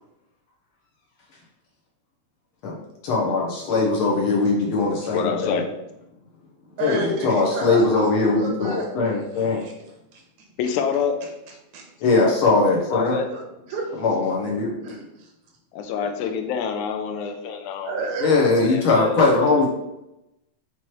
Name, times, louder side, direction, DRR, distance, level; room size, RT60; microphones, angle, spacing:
voice 1, 3.0-5.6 6.8-9.6 12.0-13.2 14.0-14.8 18.2-19.7, left 3 dB, 70° left, -2 dB, 1.3 m, -20 dB
voice 2, 5.1-5.7 10.6-11.2 12.9-13.3 15.7-17.9 18.3-19.2, left 7 dB, 85° left, 5 dB, 2.0 m, -27 dB
voice 3, 6.8-8.1 8.4-10.2 11.7-11.8 13.2-13.4 13.7-13.9 14.8-15.3 17.8-18.4, right 3 dB, 80° right, 1 dB, 2.2 m, -32 dB
5.8 x 3.1 x 3.0 m, 0.90 s
omnidirectional pair, 3.3 m